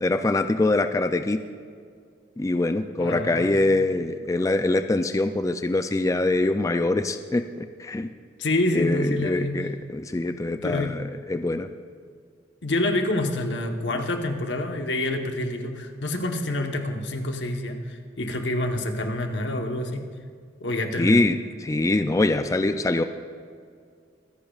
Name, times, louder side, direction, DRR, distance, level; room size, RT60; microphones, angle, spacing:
voice 1, 0.0-1.4 2.4-8.1 8.7-11.0 11.3-11.7 21.0-23.0, left 2 dB, 20° left, 8 dB, 0.3 m, -24 dB
voice 2, 3.0-3.5 8.4-9.6 10.6-11.1 12.6-20.0 20.6-21.2, left 1 dB, 85° left, 4 dB, 1.2 m, -27 dB
24.0 x 10.5 x 2.4 m, 2.1 s
head